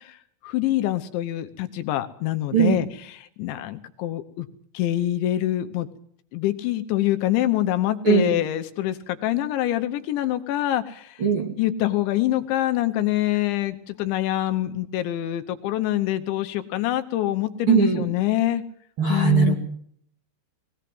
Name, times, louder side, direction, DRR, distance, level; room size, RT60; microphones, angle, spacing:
voice 1, 0.4-4.5 4.7-5.9 6.3-11.2 11.6-18.6 19.1-19.6, left 14 dB, 75° left, 8 dB, 3.1 m, -25 dB
voice 2, 11.2-11.5 17.7-18.0 19.0-19.6, right 6 dB, 40° right, 1 dB, 2.1 m, -19 dB
20.5 x 17.0 x 7.8 m, 0.64 s
omnidirectional pair, 5.6 m